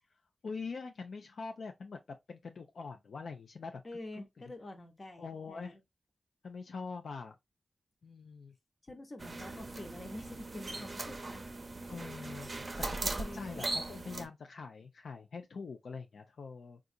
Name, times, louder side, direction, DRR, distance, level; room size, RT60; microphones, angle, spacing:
voice 1, 0.4-3.8 5.2-5.8 6.4-7.4 8.0-8.5 11.9-12.5 12.8-16.8, left 4 dB, 80° left, 0.4 m, -44 dB
voice 2, 3.8-5.8 8.8-11.4 13.1-13.7, left 1 dB, 45° left, 0.9 m, -47 dB
sound 1, 9.2-14.3, right 2 dB, 40° right, 0.6 m, -39 dB
3.7 x 2.4 x 2.6 m
cardioid pair, 70°, 0 cm